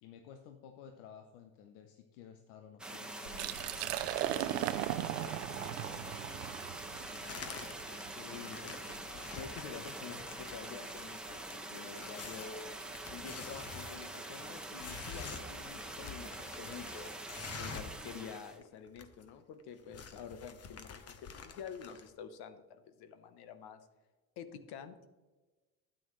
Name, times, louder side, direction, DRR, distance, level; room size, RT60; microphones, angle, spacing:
voice 1, 0.0-3.6 4.3-4.9 5.2-6.4, left 8 dB, 75° left, 6 dB, 1.0 m, -54 dB
sound 1, 2.8-18.6, right 2 dB, ahead, 1.4 m, -45 dB
Liquid, 3.3-9.0, right 14 dB, 85° right, 0.6 m, -38 dB
sound 2, 7.1-8.0 8.3-18.0 18.3-18.4 18.6-19.3 19.6-22.1, left 5 dB, 35° left, 1.1 m, -48 dB
voice 2, 8.2-8.8 9.1-12.7 13.1-23.9 24.4-25.1, left 7 dB, 60° left, 10 dB, 1.2 m, -48 dB
12.5 x 8.9 x 3.2 m, 1.2 s
hypercardioid pair, 80°, 45 cm